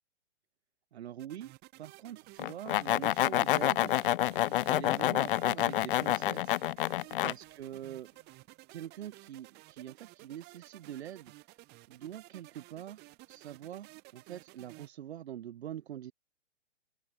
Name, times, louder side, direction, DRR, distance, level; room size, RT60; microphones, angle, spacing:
voice 1, 0.9-1.5 1.8-3.9 4.6-6.6 7.2-8.1 8.7-11.3 11.9-16.1, right 11 dB, 60° right, 3.9 m, -44 dB
sound 1, 1.2-14.9, right 22 dB, 25° right, 2.7 m, -55 dB
sound 2, 2.4-7.3, left 14 dB, 45° left, 0.9 m, -28 dB
hypercardioid pair, 145°, 36 cm